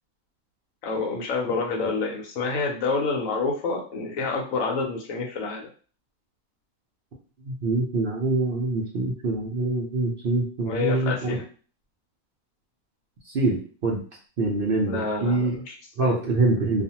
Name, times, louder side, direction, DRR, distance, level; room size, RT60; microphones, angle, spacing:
voice 1, 0.8-5.7 10.6-11.4 14.8-16.1, left 4 dB, 70° left, 1 dB, 1.0 m, -28 dB
voice 2, 7.4-11.4 13.3-14.0 14.4-15.6 16.0-16.8, right 2 dB, 60° right, -2 dB, 0.5 m, -25 dB
2.4 x 2.4 x 2.8 m, 0.39 s
omnidirectional pair, 1.6 m